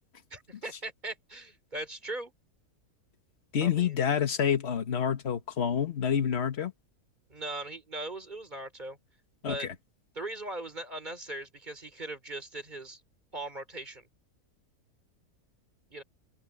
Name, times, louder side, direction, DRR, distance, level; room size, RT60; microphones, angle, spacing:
voice 1, 0.3-2.3 3.6-4.0 7.3-9.0 9.5-9.7 10.1-13.0 13.3-14.1 15.9-16.0, right 2 dB, 30° right, 3.5 m, -39 dB
voice 2, 3.5-6.7 9.4-9.7, left 8 dB, 45° left, 1.5 m, -28 dB
open air
omnidirectional pair, 1.6 m